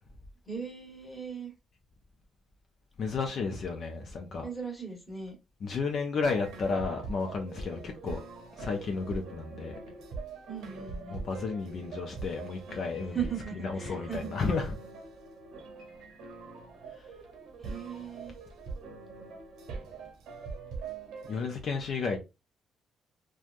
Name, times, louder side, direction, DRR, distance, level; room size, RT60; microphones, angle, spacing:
voice 1, 0.4-1.5 4.4-5.4 10.5-11.3 13.1-14.3 17.6-18.4, right 7 dB, 10° left, 1.3 m, -38 dB
voice 2, 3.0-4.4 5.6-8.2 8.6-9.8 11.1-13.2 13.6-14.7 21.3-22.2, left 4 dB, 60° left, 0.6 m, -32 dB
sound 1, 6.3-21.5, right 4 dB, 90° right, 0.7 m, -43 dB
3.1 x 2.3 x 2.5 m
cardioid pair, 90°, 0 cm